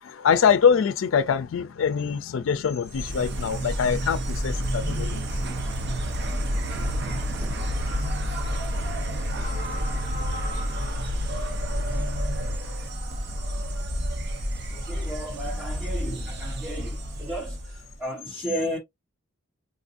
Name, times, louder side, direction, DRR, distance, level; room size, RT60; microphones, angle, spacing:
voice 1, 0.0-5.2, left 7 dB, 80° left, 0.4 m, -23 dB
Insect, 2.9-18.0, equal, 60° right, 0.8 m, -29 dB
voice 2, 14.7-18.8, equal, 10° right, 1.0 m, -34 dB
3.8 x 2.5 x 2.4 m
head